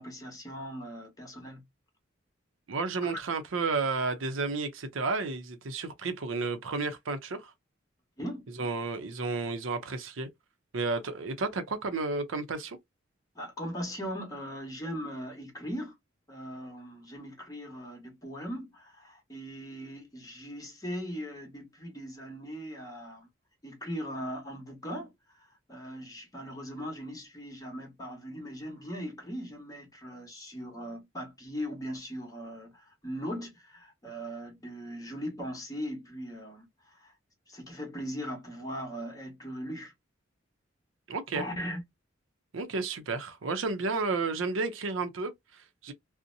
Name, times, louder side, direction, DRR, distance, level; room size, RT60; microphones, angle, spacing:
voice 1, 0.0-1.6 3.0-3.2 8.2-8.5 13.3-15.9 16.3-23.3 23.6-37.1 37.5-39.9 41.3-41.8, equal, 20° left, 1.0 m, -39 dB
voice 2, 2.7-7.5 8.6-10.3 10.7-12.8 41.1-41.4 42.5-45.9, right 3 dB, 80° right, 0.6 m, -32 dB
2.6 x 2.1 x 2.5 m
head